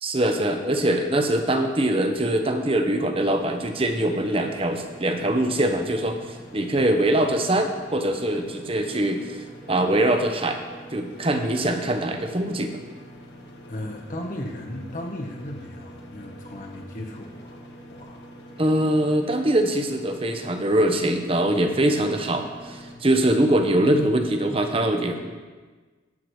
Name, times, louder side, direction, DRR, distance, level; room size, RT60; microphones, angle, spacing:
voice 1, 0.0-6.2 6.5-9.4 9.7-10.6 10.9-12.8 18.6-25.3, right 1 dB, 30° right, 5 dB, 0.9 m, -23 dB
sound 1, 3.2-23.0, equal, 65° left, 1.5 m, -45 dB
voice 2, 13.7-17.6 17.9-18.2, left 1 dB, 45° left, 0 dB, 1.0 m, -36 dB
11.0 x 4.8 x 8.1 m, 1.4 s
head